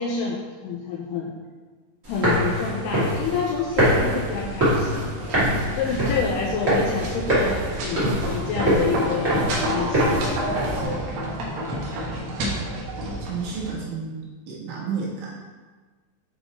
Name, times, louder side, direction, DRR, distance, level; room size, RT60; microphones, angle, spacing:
voice 1, 0.0-1.4 2.1-5.0 5.4-10.3, left 5 dB, 80° left, -1 dB, 2.4 m, -28 dB
sound 1, 2.0-10.8, equal, 25° right, 1.7 m, -24 dB
sound 2, 4.3-13.7, right 1 dB, 70° right, 3.1 m, -30 dB
voice 2, 13.3-15.3, right 5 dB, 85° right, -5 dB, 4.1 m, -31 dB
8.9 x 4.1 x 4.5 m, 1.4 s
omnidirectional pair, 5.3 m